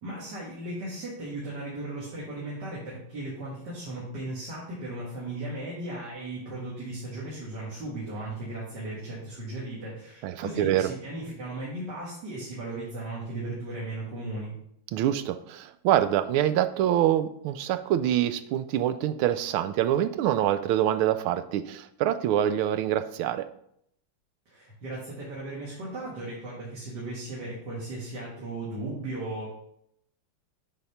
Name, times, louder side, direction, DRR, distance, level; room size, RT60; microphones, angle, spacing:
voice 1, 0.0-14.6 24.5-29.5, right 2 dB, 55° right, -6 dB, 2.7 m, -36 dB
voice 2, 10.2-10.9 14.9-23.5, right 11 dB, 80° right, 12 dB, 1.5 m, -25 dB
8.8 x 4.2 x 5.7 m, 0.71 s
omnidirectional pair, 2.3 m